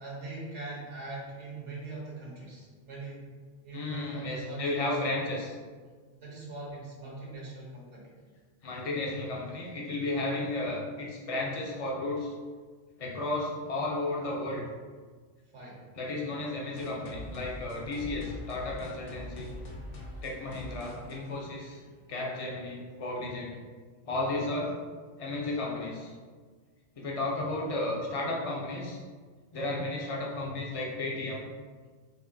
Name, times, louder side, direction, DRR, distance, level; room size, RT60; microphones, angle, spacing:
voice 1, 0.0-3.2 3.6-5.1 6.1-8.1 15.5-16.1, right 3 dB, 80° right, -4 dB, 1.5 m, -41 dB
voice 2, 3.7-5.6 8.6-12.3 13.0-14.6 16.0-19.5 20.2-21.8 22.1-23.6 24.0-24.7 25.2-26.1 27.0-29.0 29.5-31.5, left 2 dB, 35° left, -2 dB, 0.6 m, -33 dB
sound 1, 16.8-22.2, equal, 80° left, 1.1 m, -43 dB
5.1 x 2.7 x 2.6 m, 1.5 s
omnidirectional pair, 1.2 m